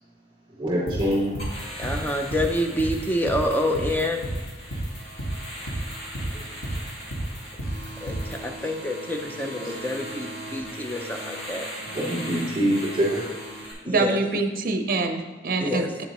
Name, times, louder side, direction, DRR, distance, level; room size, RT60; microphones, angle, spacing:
voice 1, 0.6-1.3 6.3-6.4 11.9-13.2, equal, 30° right, -7 dB, 2.8 m, -24 dB
sound 1, 0.9-8.4, right 1 dB, 90° left, 1.8 m, -31 dB
sound 2, 1.4-13.7, equal, 60° left, 2.3 m, -39 dB
voice 2, 1.8-4.2 8.0-11.7 13.8-14.2 15.6-15.9, left 1 dB, 10° left, 3 dB, 0.6 m, -27 dB
voice 3, 13.9-16.1, right 3 dB, 50° right, 6 dB, 0.7 m, -25 dB
9.0 x 6.9 x 3.0 m, 1.2 s
head